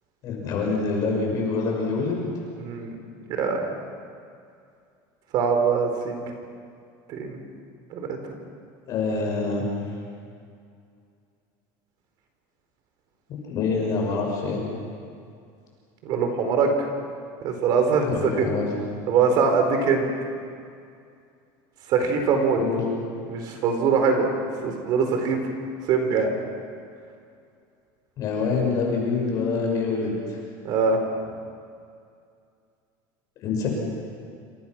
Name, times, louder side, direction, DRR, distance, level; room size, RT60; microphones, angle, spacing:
voice 1, 0.2-2.3 8.9-9.6 13.4-14.6 18.1-18.7 22.6-22.8 28.2-30.1 33.4-33.7, left 4 dB, 35° left, -1 dB, 6.3 m, -25 dB
voice 2, 2.6-2.9 3.3-3.6 5.3-6.1 7.1-7.4 7.9-8.2 16.0-16.9 17.4-18.5 19.1-20.1 21.9-22.6 23.3-24.2 24.6-25.4 25.9-26.3 30.6-31.0, right 5 dB, 40° right, 4 dB, 4.3 m, -22 dB
28.0 x 27.0 x 6.2 m, 2.3 s
cardioid pair, 180°, 10 cm